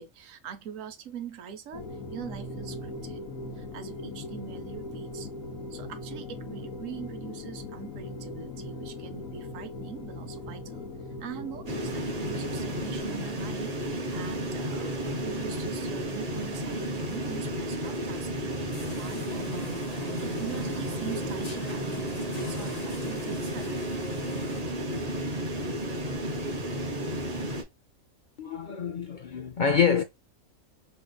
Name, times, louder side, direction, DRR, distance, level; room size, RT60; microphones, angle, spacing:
voice 1, 0.0-3.2 3.5-5.3 5.7-10.9 11.2-19.8 20.2-23.9, right 7 dB, 75° right, 1.1 m, -43 dB
sound 1, 1.7-13.0, left 2 dB, 85° left, 1.3 m, -40 dB
sound 2, 11.7-27.6, right 1 dB, 35° right, 0.8 m, -32 dB
sound 3, 18.7-24.6, equal, 30° left, 1.1 m, -41 dB
voice 2, 28.4-30.0, left 6 dB, 60° left, 0.5 m, -26 dB
3.6 x 3.3 x 2.2 m
omnidirectional pair, 1.4 m